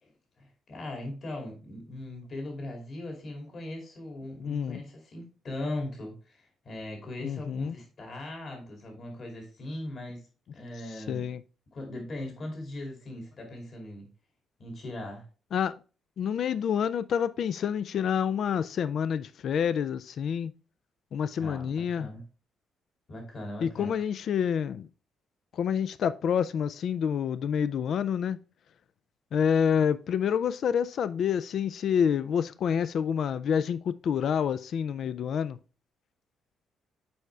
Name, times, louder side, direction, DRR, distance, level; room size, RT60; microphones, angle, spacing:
voice 1, 0.0-11.2 11.7-14.1 14.6-15.3 21.4-22.2 23.1-23.9, left 1 dB, 50° left, 2.3 m, -39 dB
voice 2, 4.4-4.8 7.2-7.8 11.1-11.4 15.5-15.7 16.2-20.5 21.1-22.1 23.6-24.9 25.5-28.4 29.3-35.6, left 8 dB, 65° left, 0.3 m, -28 dB
6.9 x 4.8 x 3.2 m
cardioid pair, 90°, 0 cm